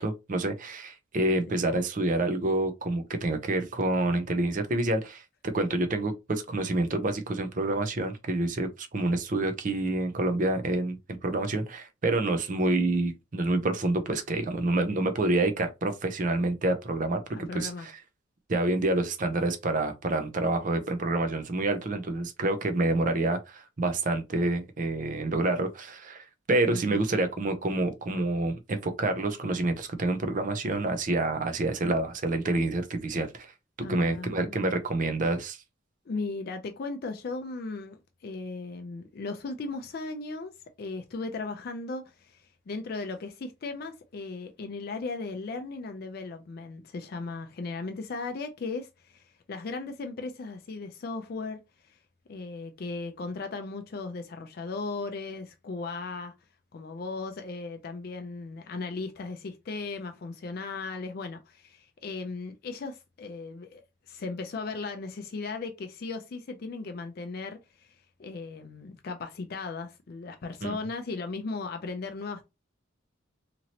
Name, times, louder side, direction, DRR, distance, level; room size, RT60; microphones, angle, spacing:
voice 1, 0.0-11.0 11.2-17.2 17.5-17.9 18.5-33.5 33.9-35.6 70.6-70.8, right 2 dB, 40° right, 0.5 m, -28 dB
voice 2, 17.3-17.9 26.7-27.0 33.8-34.6 36.1-40.5 40.8-52.0 52.3-56.3 56.7-63.8 64.1-72.5, left 3 dB, 50° left, 0.4 m, -37 dB
2.9 x 2.7 x 2.8 m
head